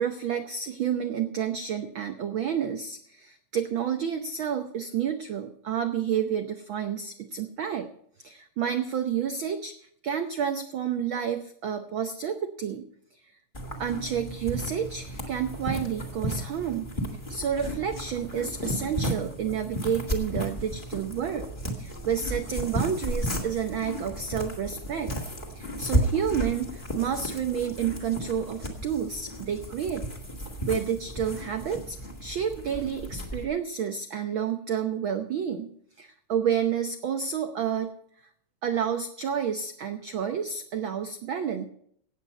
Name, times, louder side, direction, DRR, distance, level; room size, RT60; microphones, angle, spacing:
voice 1, 0.0-7.9 8.2-12.9 13.2-13.3 13.8-16.9 17.3-21.5 21.8-25.1 25.5-30.1 30.6-35.7 36.0-37.9 38.6-41.7, right 8 dB, 80° right, 7 dB, 1.1 m, -30 dB
sound 1, 13.5-33.5, right 1 dB, 20° left, 2.0 m, -34 dB
17.0 x 8.6 x 5.4 m, 0.67 s
omnidirectional pair, 3.4 m